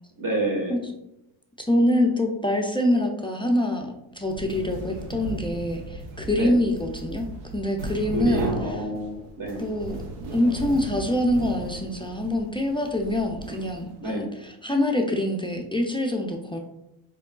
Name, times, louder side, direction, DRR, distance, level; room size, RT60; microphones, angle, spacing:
voice 1, 0.2-0.7 6.3-6.5 8.1-9.6 14.0-14.3, right 1 dB, 40° right, 1 dB, 1.3 m, -28 dB
voice 2, 1.6-7.3 7.5-8.5 9.6-10.0 10.3-16.6, left 1 dB, 10° left, 2 dB, 0.4 m, -25 dB
sound 1, 4.2-14.1, right 2 dB, 80° right, 0.7 m, -36 dB
4.6 x 3.4 x 2.2 m, 0.86 s
cardioid pair, 70°, 49 cm